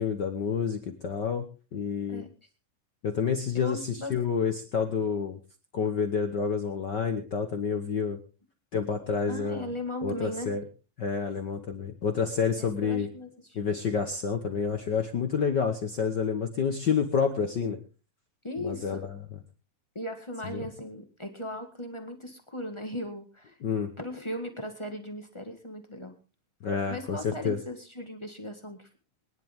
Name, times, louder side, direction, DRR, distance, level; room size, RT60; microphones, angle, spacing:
voice 1, 0.0-1.4 1.7-2.2 3.0-5.4 5.7-8.2 8.7-9.7 10.0-10.6 11.0-13.1 13.5-17.8 18.6-19.1 20.5-20.6 23.6-23.9 26.6-27.6, left 6 dB, 80° left, 6 dB, 0.9 m, -29 dB
voice 2, 3.5-4.2 9.3-10.5 12.6-13.7 18.4-19.0 19.9-23.6 24.0-26.1 26.9-28.9, left 1 dB, 20° left, 4 dB, 0.8 m, -38 dB
23.5 x 11.0 x 3.6 m, 0.33 s
omnidirectional pair, 3.8 m